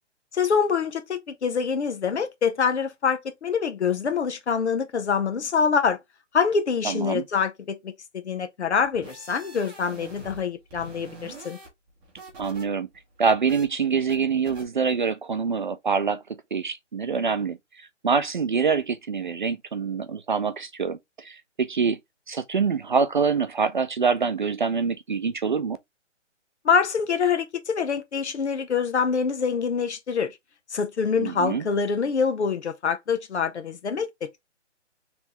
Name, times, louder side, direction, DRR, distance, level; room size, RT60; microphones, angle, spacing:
voice 1, 0.3-6.0 6.3-7.9 8.2-11.6 26.6-30.3 30.7-34.3, left 6 dB, 65° left, 1.2 m, -25 dB
voice 2, 6.8-7.3 12.4-12.9 13.2-16.2 16.5-22.0 22.3-25.8 31.2-31.7, right 5 dB, 45° right, 0.4 m, -25 dB
sound 1, 8.8-10.4 10.7-12.6 12.9-13.6 14.1-14.2 14.4-14.6, right 2 dB, 10° right, 1.1 m, -44 dB
4.5 x 3.4 x 3.0 m
hypercardioid pair, 160°, 36 cm